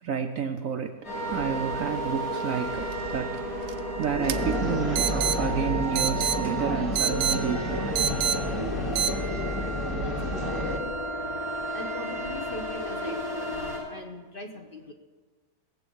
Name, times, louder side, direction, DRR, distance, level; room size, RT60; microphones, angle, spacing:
voice 1, 0.0-1.0 1.3-3.4 4.0-7.8, right 7 dB, 60° right, 6 dB, 0.9 m, -30 dB
sound 1, 1.0-13.8, right 1 dB, 50° left, 6.8 m, -34 dB
sound 2, 2.8-9.1, right 9 dB, 85° right, 1.3 m, -31 dB
sound 3, 4.2-10.8, left 1 dB, 20° left, 1.6 m, -30 dB
voice 2, 10.0-10.9 11.7-14.9, left 1 dB, 35° left, 3 dB, 1.1 m, -41 dB
18.5 x 7.8 x 7.0 m, 1.3 s
omnidirectional pair, 1.9 m